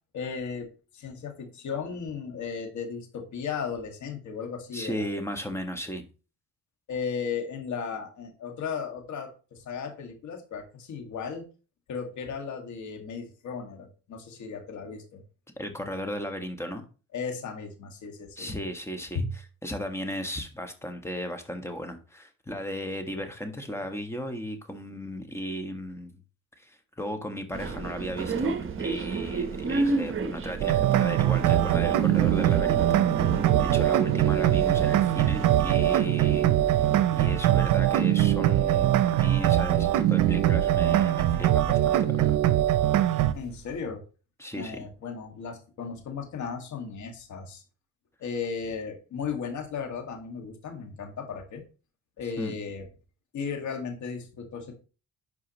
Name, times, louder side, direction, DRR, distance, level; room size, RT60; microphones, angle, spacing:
voice 1, 0.1-5.1 6.9-11.5 11.9-15.2 17.1-18.5 19.2-19.3 43.3-44.0 44.6-47.6 48.2-51.6 52.2-52.8 53.3-54.7, left 6 dB, 70° left, 2.0 m, -35 dB
voice 2, 4.7-6.0 15.6-16.8 18.4-26.1 26.6-42.4 44.4-44.8 52.4-52.5, equal, 10° left, 1.5 m, -36 dB
sound 1, 27.5-43.8, right 4 dB, 45° right, 1.1 m, -34 dB
sound 2, 30.6-43.3, right 13 dB, 85° right, 0.6 m, -22 dB
10.5 x 4.9 x 3.0 m
cardioid pair, 90°, 30 cm